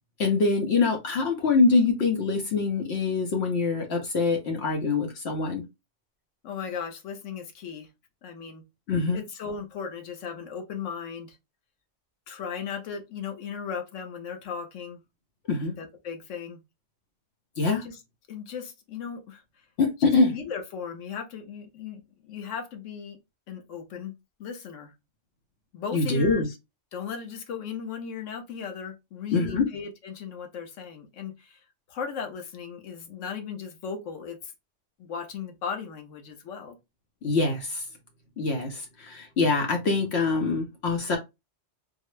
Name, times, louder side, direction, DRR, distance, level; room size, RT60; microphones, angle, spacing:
voice 1, 0.2-5.6 8.9-9.2 15.5-15.7 17.6-17.8 19.8-20.3 25.9-26.5 29.3-29.7 37.2-37.8 38.4-41.2, left 4 dB, 65° left, 1.0 m, -24 dB
voice 2, 6.4-7.9 8.2-8.6 9.1-11.4 12.3-15.0 15.6-16.6 17.8-18.0 18.3-19.4 20.0-23.2 23.5-24.9 25.7-26.6 26.9-31.6 31.9-34.5 35.0-36.8, left 6 dB, 85° left, 1.1 m, -37 dB
3.8 x 2.1 x 3.1 m
omnidirectional pair, 1.2 m